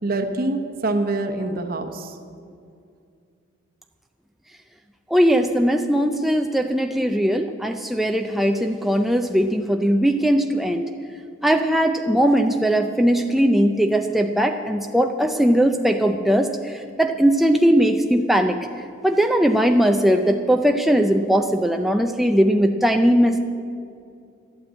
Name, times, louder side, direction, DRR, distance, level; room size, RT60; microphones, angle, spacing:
voice 1, 0.0-2.1, right 2 dB, 45° right, 6 dB, 1.0 m, -25 dB
voice 2, 5.1-10.8 11.4-18.6 19.0-23.4, equal, ahead, 4 dB, 0.4 m, -19 dB
12.5 x 8.8 x 8.4 m, 2.4 s
head